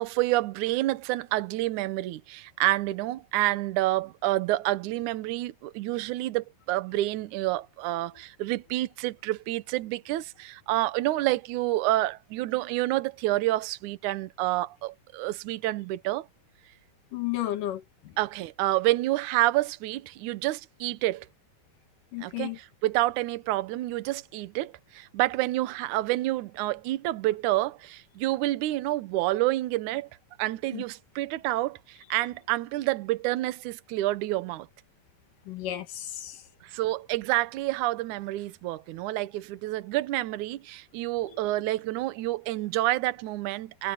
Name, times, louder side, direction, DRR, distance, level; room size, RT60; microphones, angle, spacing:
voice 1, 0.0-16.3 18.2-21.3 22.2-30.1 30.4-34.7 36.6-43.9, right 17 dB, 70° right, 2.2 m, -28 dB
voice 2, 17.1-18.1 22.1-22.6 30.7-30.8 35.5-36.4, left 13 dB, 75° left, 3.1 m, -33 dB
omnidirectional pair, 3.8 m